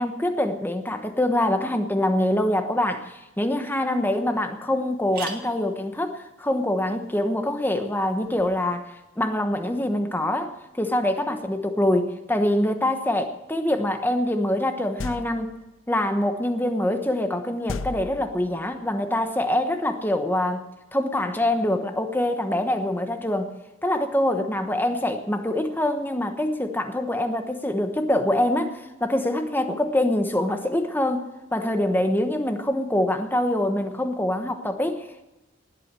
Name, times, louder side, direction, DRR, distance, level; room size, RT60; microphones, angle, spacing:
voice 1, 0.0-8.9 9.2-15.5 15.9-20.6 20.9-23.5 23.8-35.2, left 1 dB, 10° left, 7 dB, 1.1 m, -24 dB
sound 1, 3.6-3.7 4.1-4.2 4.4-4.5 4.9-8.6, right 5 dB, 50° right, 2.4 m, -44 dB
sound 2, 15.0-15.6 17.7-18.7, left 3 dB, 85° left, 0.6 m, -35 dB
19.0 x 8.5 x 7.6 m, 1.0 s
head